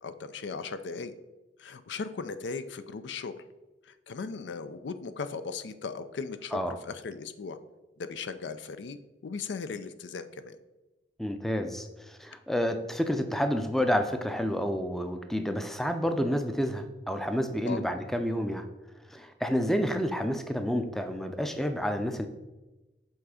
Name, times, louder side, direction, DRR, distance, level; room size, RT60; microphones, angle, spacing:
voice 1, 0.0-1.1 1.6-3.3 4.1-7.6 8.0-10.6 17.6-17.8, left 4 dB, 90° left, 11 dB, 0.5 m, -37 dB
voice 2, 11.2-18.7 19.1-22.3, equal, ahead, 7 dB, 0.4 m, -29 dB
7.1 x 3.7 x 4.9 m, 1.1 s
head